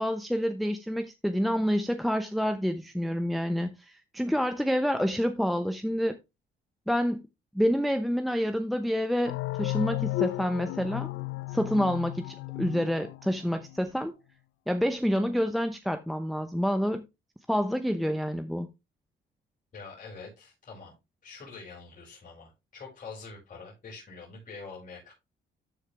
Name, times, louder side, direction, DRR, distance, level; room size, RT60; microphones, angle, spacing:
voice 1, 0.0-6.2 6.9-7.2 7.5-11.1 11.5-14.1 14.7-17.0 17.5-18.7, equal, ahead, 0.8 m, -28 dB
sound 1, 9.3-13.8, left 18 dB, 90° left, 0.4 m, -33 dB
voice 2, 19.7-20.9 21.2-25.1, left 4 dB, 45° left, 5.4 m, -45 dB
13.0 x 4.5 x 3.4 m
cardioid pair, 90°, 20 cm